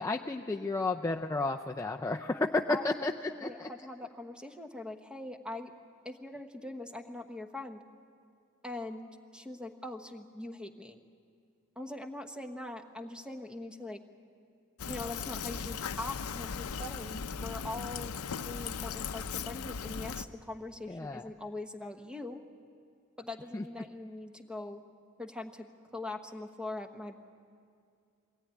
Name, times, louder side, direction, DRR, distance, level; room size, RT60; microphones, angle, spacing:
voice 1, 0.0-3.1 3.4-3.7 20.9-21.3 23.5-23.6, left 3 dB, 15° left, 3 dB, 0.5 m, -32 dB
voice 2, 2.7-5.7 6.0-7.8 8.6-11.0 11.8-14.0 14.9-22.4 23.2-24.8 25.2-25.7 25.9-27.1, left 2 dB, 5° right, 6 dB, 1.1 m, -42 dB
Fill (with liquid), 14.8-20.3, left 6 dB, 90° left, 0.6 m, -38 dB
22.0 x 17.5 x 9.7 m, 2.3 s
head